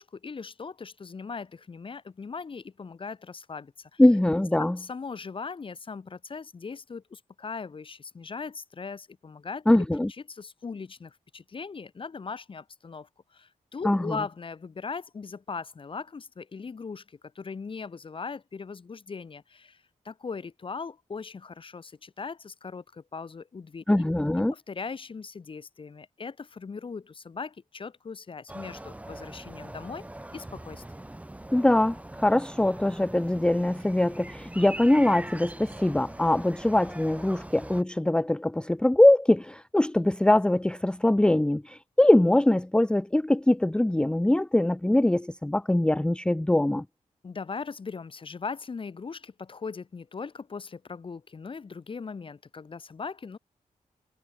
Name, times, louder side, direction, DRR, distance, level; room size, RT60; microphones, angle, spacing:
voice 1, 0.0-4.0 4.6-9.6 10.3-24.1 24.4-30.1 30.3-31.0 47.2-53.4, left 5 dB, 40° left, 1.6 m, -39 dB
voice 2, 4.0-4.8 9.7-10.1 13.8-14.2 23.9-24.5 31.5-46.8, left 1 dB, 5° left, 0.6 m, -22 dB
sound 1, 28.5-37.8, right 1 dB, 10° right, 3.0 m, -42 dB
wide cardioid pair, 155°, 13 cm